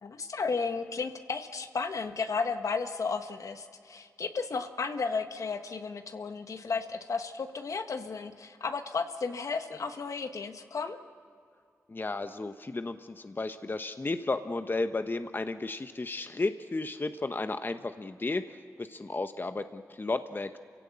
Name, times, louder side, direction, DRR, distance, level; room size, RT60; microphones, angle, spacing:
voice 1, 0.0-11.0, left 4 dB, 65° left, 7 dB, 1.4 m, -33 dB
voice 2, 11.9-18.5 18.8-20.6, left 3 dB, 35° left, 9 dB, 1.0 m, -33 dB
28.5 x 16.5 x 8.6 m, 2.3 s
cardioid pair, 40°, 6 cm